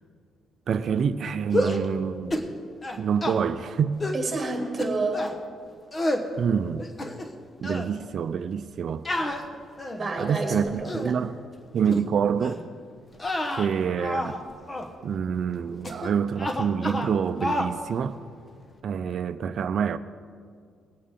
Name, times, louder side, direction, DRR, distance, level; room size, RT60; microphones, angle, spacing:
voice 1, 0.7-2.5 3.0-4.0 6.4-6.8 7.6-9.0 10.2-11.4 11.7-12.6 13.5-14.4 15.0-18.2 18.8-20.0, right 7 dB, 60° right, 0.5 m, -27 dB
sound 1, 1.5-1.9 2.3-2.5 2.8-3.4 4.0-4.2 4.8-5.4 5.9-6.3 6.8-7.4 7.6-7.9 9.1-10.1 10.7-11.1 11.9-12.0 12.4-12.6 13.1-14.4 14.7-14.9 15.8-16.1 16.4-17.1 17.4-17.7, left 1 dB, 25° left, 1.2 m, -29 dB
voice 2, 4.1-5.3 10.0-11.2, right 3 dB, 30° right, 2.9 m, -29 dB
21.0 x 8.6 x 3.7 m
cardioid pair, 90°, 0 cm